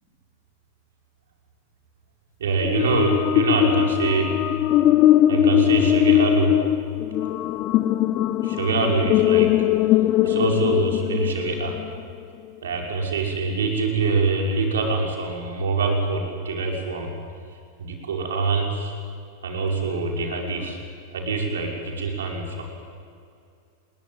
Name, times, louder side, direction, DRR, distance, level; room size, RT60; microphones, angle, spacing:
voice 1, 2.4-4.3 5.3-6.5 8.4-9.6 10.2-11.8 12.6-17.1 17.8-18.9 19.4-20.8 21.1-22.6, right 4 dB, 65° right, 1 dB, 5.7 m, -24 dB
sound 1, 2.6-12.0, left 13 dB, 35° left, 1.0 m, -20 dB
29.0 x 22.0 x 9.3 m, 2.3 s
figure-of-eight pair, 90°, 0 cm